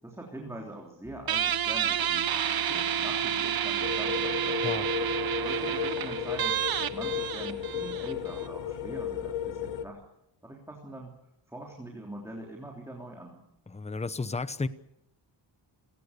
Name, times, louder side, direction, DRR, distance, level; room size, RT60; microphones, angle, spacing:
voice 1, 0.0-4.8 5.4-10.0 10.4-11.2 11.5-13.4, right 1 dB, 5° right, 3.4 m, -43 dB
sound 1, 1.0-9.9, right 3 dB, 40° left, 6.6 m, -53 dB
Guitar, 1.3-8.5, right 9 dB, 50° right, 0.9 m, -29 dB
sound 2, 3.8-9.9, left 10 dB, 80° left, 1.3 m, -34 dB
voice 2, 13.7-14.7, left 3 dB, 15° left, 0.9 m, -33 dB
29.5 x 18.5 x 6.7 m
wide cardioid pair, 150°, 45 cm